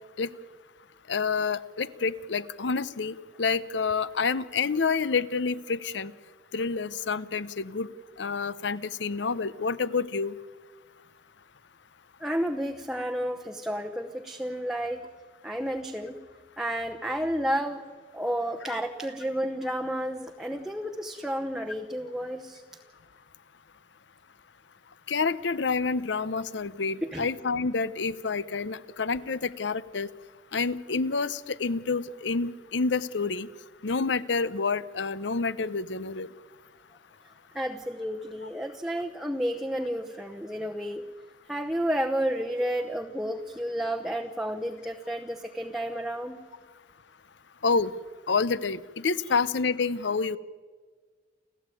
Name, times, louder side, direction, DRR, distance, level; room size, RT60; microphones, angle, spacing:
voice 1, 1.1-6.1 6.5-7.9 8.2-10.3 18.7-18.8 25.1-30.1 30.5-33.5 33.8-36.3 47.6-47.9 48.3-50.4, left 4 dB, 70° left, 17 dB, 0.7 m, -28 dB
voice 2, 12.2-15.0 15.4-16.2 16.6-17.8 18.1-22.6 27.1-27.3 37.5-41.0 41.5-46.4, equal, 5° right, 2 dB, 0.9 m, -31 dB
29.5 x 13.5 x 9.1 m, 1.5 s
head